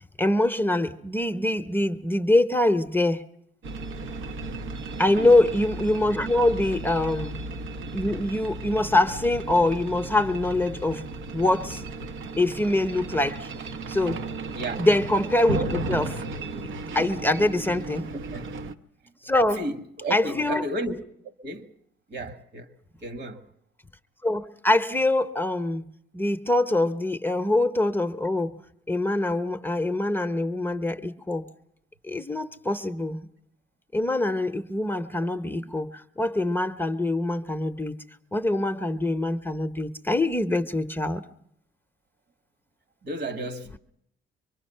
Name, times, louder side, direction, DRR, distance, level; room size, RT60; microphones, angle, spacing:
voice 1, 0.2-3.2 5.0-7.3 7.9-11.0 11.3-11.8 12.4-13.5 13.9-14.2 14.8-16.2 16.9-18.1 19.2-19.6 20.1-20.6 24.2-28.6 28.9-31.5 32.0-33.2 33.9-38.0 38.3-41.2, left 1 dB, 10° left, 0.8 m, -24 dB
sound 1, 3.6-18.7, right 2 dB, 80° right, 1.0 m, -35 dB
voice 2, 14.5-14.8 18.1-18.5 19.6-21.7 22.1-22.7 23.0-23.4 43.0-43.8, right 1 dB, 60° right, 1.8 m, -33 dB
24.5 x 23.0 x 5.5 m
cardioid pair, 90°, 20 cm